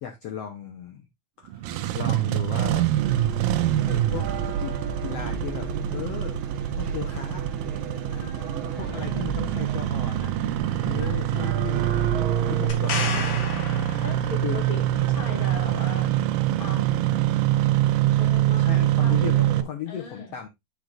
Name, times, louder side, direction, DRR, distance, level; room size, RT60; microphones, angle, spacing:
voice 1, 0.0-1.1 1.4-1.7 1.9-2.9 3.9-4.3 4.6-4.7 5.0-6.4 6.8-7.4 8.7-10.3 10.8-11.9 12.4-13.3 14.4-14.6 18.6-20.5, left 9 dB, 85° left, 1.3 m, -35 dB
Engine starting, 1.5-19.6, right 13 dB, 80° right, 2.2 m, -25 dB
sound 1, 3.0-12.8, right 6 dB, 60° right, 1.4 m, -32 dB
voice 2, 8.1-9.1 11.0-11.3 12.9-13.1 14.0-16.1 16.6-17.1 18.1-20.4, left 4 dB, 30° left, 1.0 m, -39 dB
sound 2, 12.7-14.7 18.3-18.4, left 5 dB, 60° left, 1.8 m, -32 dB
10.5 x 5.1 x 2.4 m
omnidirectional pair, 4.4 m